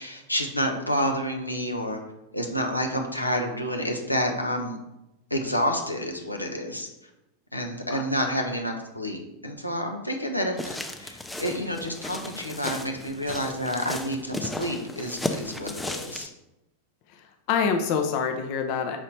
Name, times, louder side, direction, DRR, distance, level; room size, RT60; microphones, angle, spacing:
voice 1, 0.0-2.0 2.3-4.8 5.3-6.9 7.5-16.3, equal, 85° left, 2 dB, 0.8 m, -29 dB
sound 1, 10.6-16.3, left 2 dB, 5° left, 0.6 m, -35 dB
voice 2, 17.2-19.0, left 6 dB, 45° left, 6 dB, 0.7 m, -26 dB
6.2 x 4.2 x 4.1 m, 0.92 s
figure-of-eight pair, 90°, 0 cm